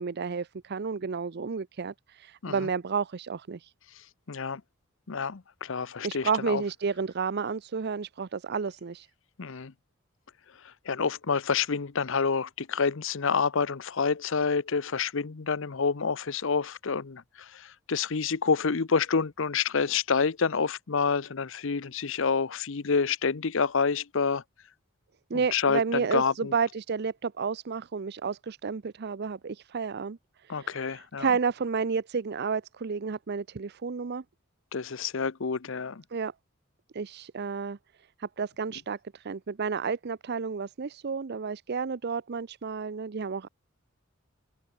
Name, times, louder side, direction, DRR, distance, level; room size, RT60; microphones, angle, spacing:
voice 1, 0.0-3.7 6.0-9.1 25.3-30.2 30.4-34.2 36.1-36.3 36.9-37.8 38.2-43.5, right 5 dB, 50° right, 0.5 m, -31 dB
voice 2, 4.3-4.6 5.1-6.6 9.4-9.7 10.6-24.4 25.3-26.5 30.5-31.3 34.7-36.0, left 5 dB, 65° left, 0.7 m, -28 dB
open air
head